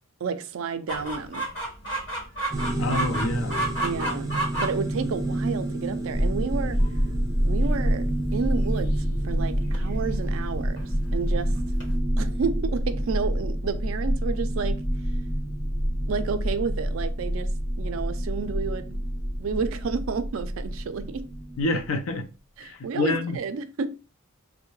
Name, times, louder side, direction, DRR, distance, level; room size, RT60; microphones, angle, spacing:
voice 1, 0.2-1.5 3.8-4.3 4.6-6.8 7.4-11.6 12.2-14.8 16.1-19.0 19.4-21.3 22.6-24.0, right 5 dB, 75° right, 0.4 m, -31 dB
Chicken rooster, 0.9-12.0, right 1 dB, 55° left, 1.3 m, -34 dB
sound 1, 2.5-21.9, right 2 dB, 15° right, 0.5 m, -34 dB
voice 2, 2.8-3.6 21.6-22.3 22.6-23.4, left 2 dB, 75° left, 0.5 m, -27 dB
sound 2, 6.1-21.8, equal, 10° left, 1.2 m, -27 dB
3.5 x 2.1 x 2.9 m
head